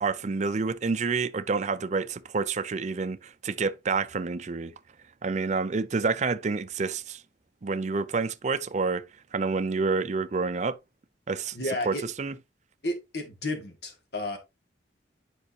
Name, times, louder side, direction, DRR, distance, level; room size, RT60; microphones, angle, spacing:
voice 1, 0.0-4.7 5.2-7.2 7.6-9.0 9.3-10.8 11.3-11.6 11.9-12.3, right 4 dB, 40° right, 0.5 m, -28 dB
voice 2, 11.5-12.0 12.8-14.4, left 1 dB, 65° left, 2.2 m, -32 dB
8.9 x 5.4 x 2.8 m
head